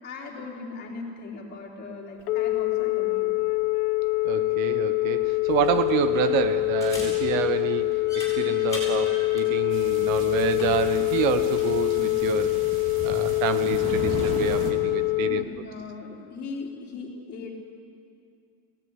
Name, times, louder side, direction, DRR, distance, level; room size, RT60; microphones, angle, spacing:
voice 1, 0.0-3.3 15.2-17.5, left 4 dB, 25° left, -2 dB, 3.8 m, -38 dB
Telephone, 2.2-15.4, left 22 dB, 80° left, 1.0 m, -25 dB
voice 2, 4.2-12.5 13.0-15.4, right 9 dB, 60° right, 11 dB, 1.2 m, -28 dB
sound 1, 5.5-14.4, left 1 dB, 5° left, 7.3 m, -42 dB
sound 2, 9.7-14.7, right 2 dB, 25° right, 2.6 m, -36 dB
24.5 x 17.5 x 9.7 m, 2.3 s
supercardioid pair, 170°, 44 cm